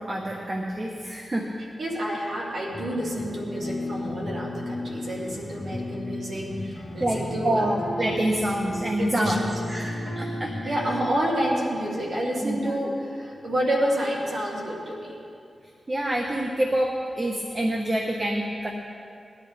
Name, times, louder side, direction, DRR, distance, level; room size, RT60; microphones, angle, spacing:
voice 1, 0.0-1.5 7.0-10.8 12.4-12.7 15.9-18.7, right 1 dB, 35° right, 0 dB, 1.3 m, -27 dB
voice 2, 1.8-7.7 9.0-9.6 10.6-15.1, equal, 70° right, -4 dB, 2.9 m, -29 dB
sound 1, 2.7-11.0, left 1 dB, 30° left, 1.8 m, -34 dB
21.0 x 11.0 x 3.5 m, 2.5 s
cardioid pair, 70°, 0 cm